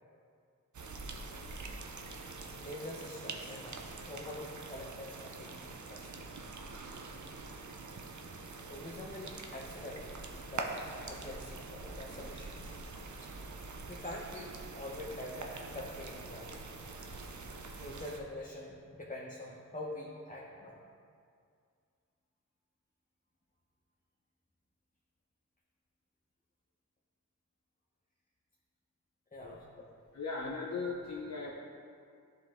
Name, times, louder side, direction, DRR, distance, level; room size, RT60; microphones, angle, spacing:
sound 1, 0.7-18.2, right 3 dB, 60° right, 0.7 m, -45 dB
voice 1, 2.4-5.6 5.9-6.3 7.9-8.0 8.7-10.1 10.4-12.8 13.2-13.3 13.9-16.6 17.2-17.3 17.8-20.8 29.3-29.9, left 1 dB, 25° left, -5 dB, 1.0 m, -45 dB
voice 2, 30.1-31.5, left 4 dB, 55° left, -3 dB, 0.8 m, -38 dB
11.0 x 3.8 x 3.6 m, 2.3 s
cardioid pair, 45°, 32 cm